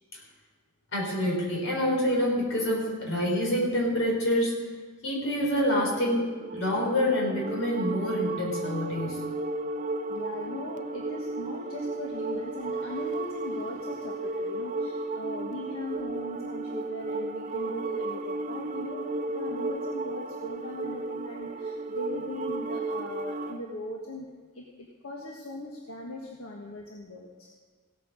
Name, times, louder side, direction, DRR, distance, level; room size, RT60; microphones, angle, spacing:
voice 1, 0.9-4.5 5.0-9.2, left 1 dB, 70° left, -2 dB, 4.8 m, -27 dB
sound 1, 6.0-23.6, right 2 dB, 35° right, 0.5 m, -34 dB
voice 2, 10.1-19.1 19.3-24.3 24.5-27.5, left 1 dB, 90° left, -1 dB, 1.5 m, -39 dB
16.0 x 9.3 x 6.4 m, 1.4 s
head